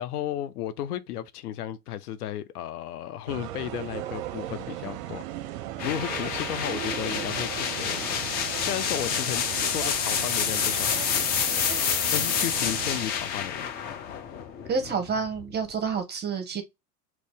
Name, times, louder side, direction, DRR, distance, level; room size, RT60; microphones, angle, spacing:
voice 1, 0.0-5.2 5.8-8.2 8.6-11.3 12.1-13.7, left 11 dB, 70° left, 0.6 m, -34 dB
sound 1, 3.3-13.1, right 12 dB, 55° right, 0.5 m, -37 dB
sound 2, 5.8-15.5, left 7 dB, 20° left, 0.3 m, -28 dB
voice 2, 14.7-16.6, right 5 dB, 20° right, 0.8 m, -29 dB
3.0 x 2.6 x 3.3 m
hypercardioid pair, 90°, 48 cm